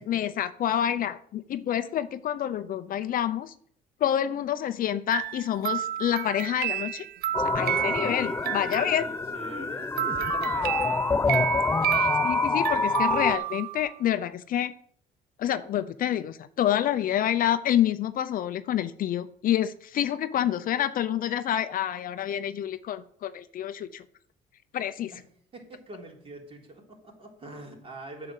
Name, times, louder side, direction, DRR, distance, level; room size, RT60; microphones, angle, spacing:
voice 1, 0.1-3.5 4.0-7.1 7.5-9.0 11.9-14.7 15.4-24.0 24.7-25.1, left 11 dB, 55° left, 12 dB, 0.7 m, -28 dB
sound 1, 5.1-9.5 10.0-14.0, right 13 dB, 65° right, 0.4 m, -31 dB
sound 2, 7.3-13.4, left 4 dB, 15° left, 0.4 m, -27 dB
voice 2, 7.7-8.4 8.8-10.8 25.1-25.2 25.5-28.3, right 2 dB, 35° right, 1 dB, 3.4 m, -44 dB
8.8 x 6.8 x 7.7 m, 0.62 s
cardioid pair, 110°, 17 cm